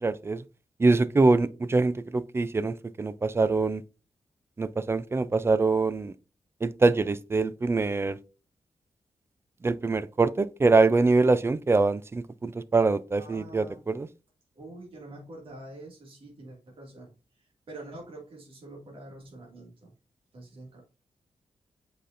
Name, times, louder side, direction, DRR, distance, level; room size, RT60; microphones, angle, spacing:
voice 1, 0.0-0.4 0.8-3.8 4.6-6.1 6.6-8.2 9.6-14.1, right 3 dB, 20° right, 0.3 m, -24 dB
voice 2, 13.1-13.9 14.5-19.9 20.3-20.8, right 2 dB, 50° right, 2.1 m, -46 dB
7.8 x 5.0 x 2.5 m
wide cardioid pair, 175°, 11 cm